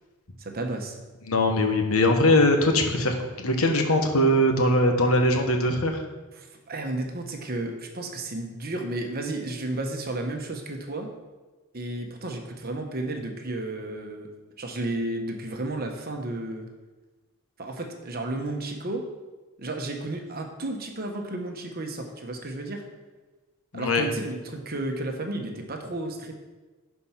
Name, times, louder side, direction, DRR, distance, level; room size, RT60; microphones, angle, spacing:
voice 1, 0.4-1.0 6.3-11.1 11.7-14.3 14.6-16.7 17.6-19.0 19.6-22.8 23.7-26.3, right 2 dB, 45° right, 4 dB, 1.1 m, -32 dB
voice 2, 1.3-6.0 23.7-24.0, left 1 dB, 70° left, 4 dB, 1.3 m, -21 dB
10.0 x 4.6 x 5.8 m, 1.2 s
head